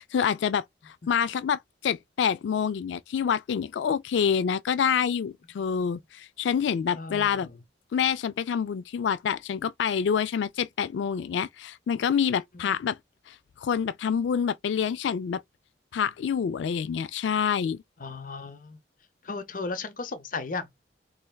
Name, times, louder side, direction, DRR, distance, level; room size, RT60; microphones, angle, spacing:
voice 1, 0.0-7.5 7.9-13.0 13.3-15.4 15.9-17.8, left 7 dB, 75° left, 0.3 m, -27 dB
voice 2, 6.9-7.5 12.5-12.8 18.0-18.8 19.2-20.8, left 4 dB, 45° left, 0.7 m, -36 dB
4.4 x 3.2 x 2.3 m
head